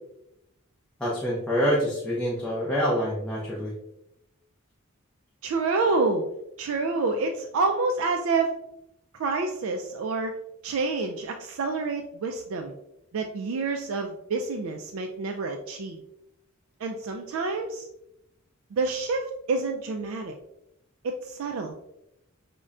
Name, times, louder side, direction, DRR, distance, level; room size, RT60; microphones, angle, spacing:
voice 1, 1.0-3.7, equal, 5° left, -7 dB, 0.6 m, -26 dB
voice 2, 5.4-6.2 6.6-8.5 9.1-10.4 10.6-12.7 13.1-16.0 16.8-17.9 18.7-20.3 21.0-21.7, right 3 dB, 65° right, 4 dB, 0.3 m, -28 dB
5.2 x 2.1 x 2.4 m, 0.83 s
head